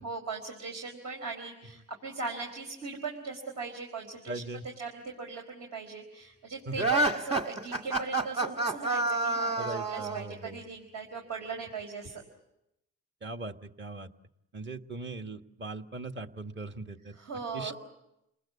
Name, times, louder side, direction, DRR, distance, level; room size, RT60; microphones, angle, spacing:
voice 1, 0.0-4.4 4.8-12.2 17.1-17.7, right 4 dB, 65° right, 1 dB, 4.6 m, -39 dB
voice 2, 4.3-4.6 6.7-6.9 9.6-10.6 13.2-14.1 14.5-17.1 17.5-17.7, right 2 dB, 40° right, 6 dB, 1.6 m, -40 dB
sound 1, 6.8-10.3, right 2 dB, 20° right, 2.0 m, -28 dB
29.5 x 20.0 x 8.4 m, 0.85 s
cardioid pair, 90°, 30 cm